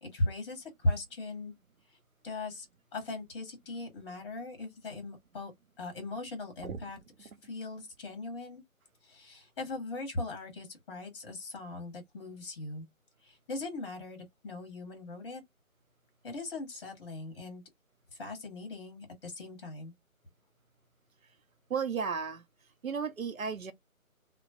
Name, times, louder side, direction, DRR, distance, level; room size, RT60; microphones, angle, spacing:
voice 1, 0.0-1.5 1.9-2.0 2.2-2.7 2.9-5.5 5.8-8.6 9.0-12.9 13.2-15.4 16.2-17.6 18.1-19.9, left 2 dB, 20° left, 0.9 m, -38 dB
voice 2, 21.7-22.4 22.8-23.7, right 6 dB, 75° right, 0.7 m, -34 dB
2.9 x 2.0 x 2.6 m
figure-of-eight pair, 150°, 42 cm